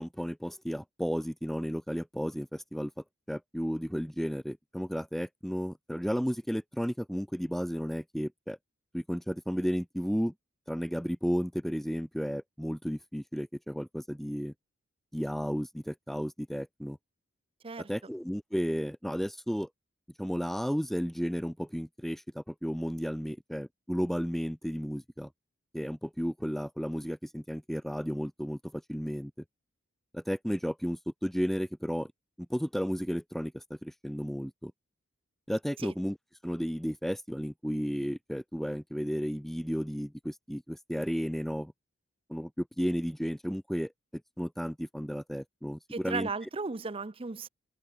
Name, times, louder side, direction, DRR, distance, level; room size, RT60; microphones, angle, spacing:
voice 1, 0.0-2.9 3.3-8.6 8.9-10.3 10.7-14.5 15.1-17.0 17.9-19.7 20.2-25.3 25.7-29.3 30.1-32.1 32.5-34.7 35.5-36.2 36.4-41.7 42.3-46.3, equal, ahead, 1.1 m, -33 dB
voice 2, 45.9-47.5, right 4 dB, 25° right, 0.6 m, -35 dB
open air
head